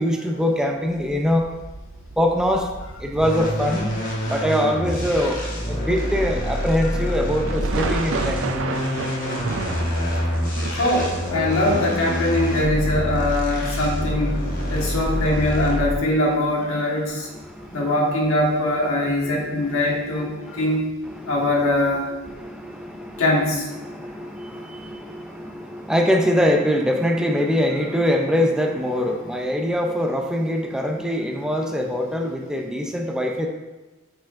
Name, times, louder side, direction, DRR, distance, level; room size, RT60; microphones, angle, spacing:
voice 1, 0.0-1.5 2.2-2.7 3.0-3.9 4.2-8.5 17.3-17.9 19.7-19.8 20.2-20.7 21.1-21.5 22.2-23.3 23.7-33.5, equal, 5° right, 2 dB, 0.5 m, -23 dB
Thunderclap mix with rain (short), 0.9-5.0 5.6-5.7 6.5-6.6 7.1-7.2 7.5-11.8, right 3 dB, 70° right, 0.5 m, -32 dB
sound 1, 3.2-16.2, equal, 45° left, 1.4 m, -26 dB
voice 2, 10.7-17.3 17.7-20.9 21.3-22.1 23.2-23.7, left 1 dB, 85° left, -2 dB, 1.5 m, -22 dB
9.1 x 4.6 x 2.5 m, 1.1 s
head